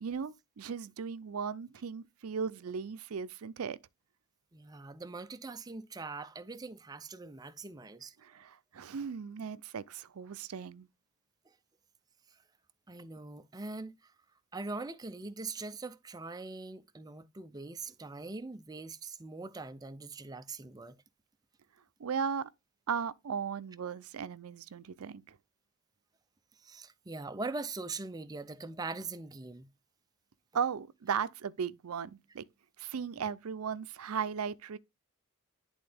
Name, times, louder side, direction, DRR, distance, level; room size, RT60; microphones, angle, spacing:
voice 1, 0.0-3.8 8.2-10.9 22.0-22.5 22.9-25.4 30.5-32.4 32.8-34.8, right 6 dB, 85° right, 0.5 m, -36 dB
voice 2, 4.5-8.1 12.9-14.1 14.5-21.0 26.6-29.7 33.2-33.3, right 3 dB, 15° right, 0.4 m, -42 dB
10.5 x 3.9 x 3.3 m
head